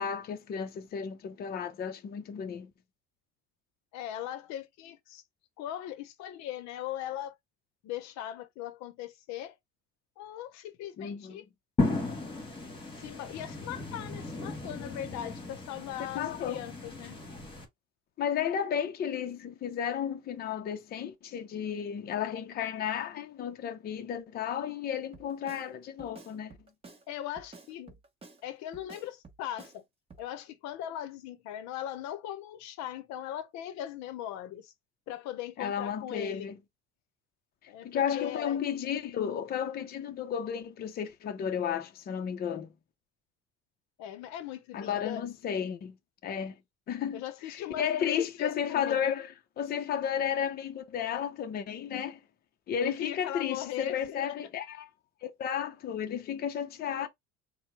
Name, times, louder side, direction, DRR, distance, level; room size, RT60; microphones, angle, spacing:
voice 1, 0.0-2.7 11.0-11.4 16.1-16.6 18.2-26.6 35.6-36.6 37.8-42.7 44.7-46.0 46.2-46.5 46.9-47.2 47.5-52.2 52.7-54.9 55.2-57.1, left 8 dB, 30° left, 0.6 m, -33 dB
voice 2, 3.9-5.2 5.6-7.3 7.8-9.6 10.2-11.4 13.0-17.2 27.1-28.0 28.4-29.8 30.2-34.7 35.1-36.5 37.7-38.6 44.0-45.2 47.1-49.0 52.8-54.4, left 11 dB, 65° left, 0.8 m, -39 dB
sound 1, 11.8-17.6, left 2 dB, 15° left, 1.4 m, -35 dB
Drum kit, 25.1-25.7 26.0-27.0 27.4-28.4 28.7-29.8 30.1-30.3, right 4 dB, 20° right, 1.1 m, -51 dB
4.5 x 2.2 x 4.7 m
cardioid pair, 160°, 30 cm